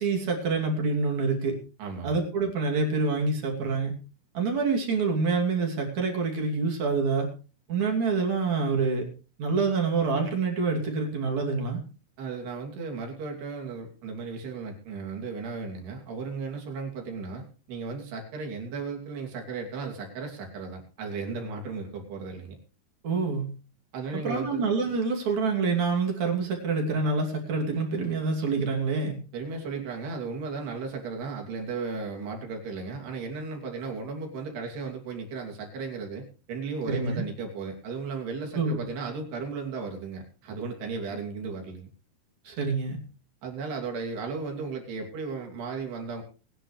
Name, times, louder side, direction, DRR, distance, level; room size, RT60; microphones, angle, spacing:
voice 1, 0.0-1.5 2.0-3.9 4.3-7.3 7.7-9.1 9.4-11.8 23.0-23.5 24.1-29.2 36.9-37.2 38.5-38.8 42.5-43.0, right 4 dB, 45° right, 1 dB, 3.8 m, -26 dB
voice 2, 1.8-2.2 12.2-22.6 23.9-24.6 29.3-41.9 43.4-46.2, right 4 dB, 75° right, 2 dB, 4.8 m, -35 dB
21.5 x 10.0 x 3.2 m, 0.35 s
omnidirectional pair, 4.7 m